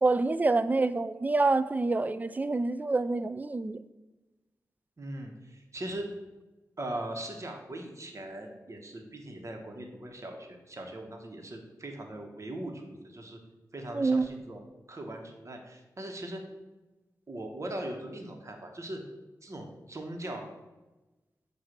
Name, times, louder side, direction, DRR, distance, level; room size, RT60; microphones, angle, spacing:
voice 1, 0.0-3.8 13.9-14.3, right 3 dB, 25° right, 0.3 m, -27 dB
voice 2, 5.0-6.1 6.8-13.4 13.7-16.4 17.3-19.0 19.4-20.4, right 1 dB, 45° right, 1.2 m, -40 dB
7.9 x 2.7 x 6.0 m
cardioid pair, 55°, 7 cm